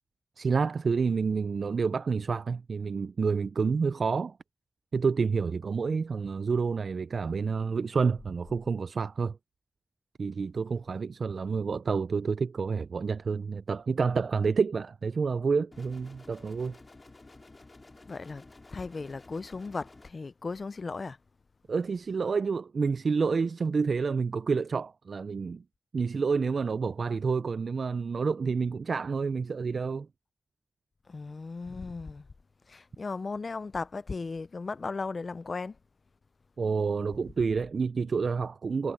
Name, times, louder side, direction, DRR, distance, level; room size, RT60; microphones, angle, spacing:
voice 1, 0.4-4.4 4.9-9.4 10.2-16.8 21.7-25.6 25.9-30.1 36.6-38.9, right 5 dB, 75° right, 0.3 m, -29 dB
sound 1, 15.7-20.1, left 2 dB, 40° left, 3.9 m, -52 dB
voice 2, 18.1-18.4 18.7-21.2 31.1-32.3 32.7-35.8, left 4 dB, 55° left, 0.4 m, -36 dB
wide cardioid pair, 70°, 0 cm